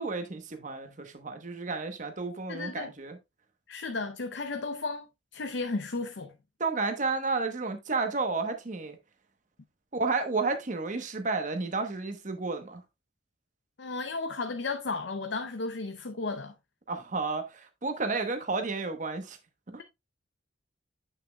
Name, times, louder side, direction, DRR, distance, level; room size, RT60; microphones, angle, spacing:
voice 1, 0.0-3.2 6.6-9.0 9.9-12.8 16.9-19.4 19.7-19.8, right 3 dB, 40° right, 1.0 m, -31 dB
voice 2, 2.5-2.9 3.7-5.1 5.3-6.3 13.8-16.5, left 3 dB, 65° left, 0.6 m, -34 dB
8.5 x 6.5 x 2.2 m
head